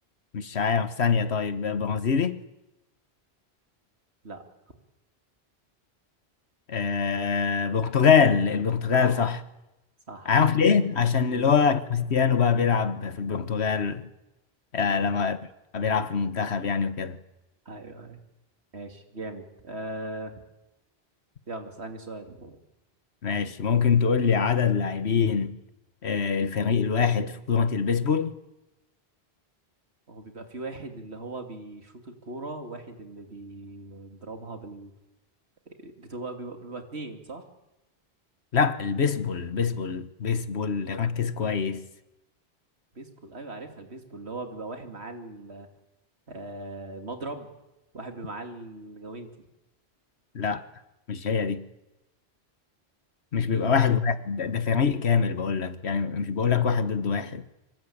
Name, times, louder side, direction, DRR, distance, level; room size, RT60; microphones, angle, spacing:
voice 1, 0.3-2.4 6.7-9.4 10.2-14.1 14.7-15.4 15.7-17.2 23.2-25.5 26.0-28.4 38.5-41.8 50.3-50.6 51.1-51.6 53.3-57.4, left 6 dB, 80° left, 1.6 m, -24 dB
voice 2, 17.6-18.2 18.7-20.4 21.5-22.6 30.1-34.9 35.7-37.4 42.9-45.7 46.3-47.5 47.9-49.3 53.5-53.8, right 2 dB, 85° right, 3.0 m, -39 dB
25.5 x 23.5 x 8.7 m
omnidirectional pair, 1.1 m